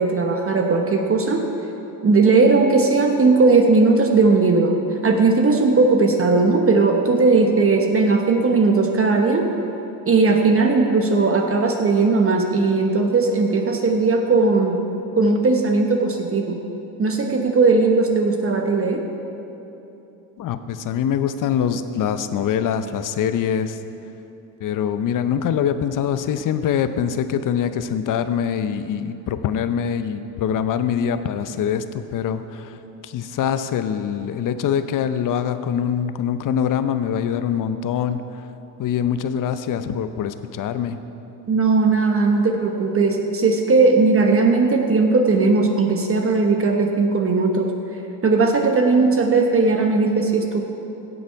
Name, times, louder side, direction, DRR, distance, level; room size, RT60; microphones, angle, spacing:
voice 1, 0.0-1.4 2.0-4.7 5.0-9.5 10.1-14.8 15.2-16.6 17.0-19.0 41.5-47.7 48.2-50.7, right 3 dB, 30° right, 3 dB, 1.0 m, -18 dB
voice 2, 20.4-23.8 24.6-32.8 33.0-38.2 38.8-41.0, left 8 dB, 40° left, 11 dB, 0.7 m, -24 dB
16.5 x 6.4 x 4.6 m, 2.9 s
supercardioid pair, 90°, 48 cm